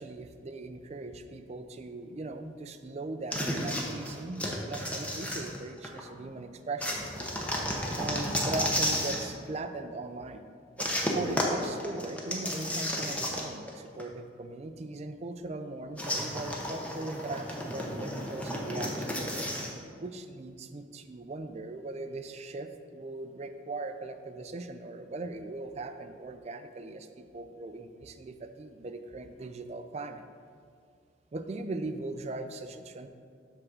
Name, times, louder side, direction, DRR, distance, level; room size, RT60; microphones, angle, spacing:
voice 1, 0.0-7.0 8.0-10.4 10.8-19.2 20.0-30.2 31.3-33.1, right 2 dB, 35° right, 8 dB, 0.4 m, -39 dB
sound 1, 3.3-6.0 6.8-9.3 10.8-13.7 14.0-14.1 16.0-19.7, equal, 5° left, 0.7 m, -32 dB
7.8 x 3.6 x 6.2 m, 2.2 s
head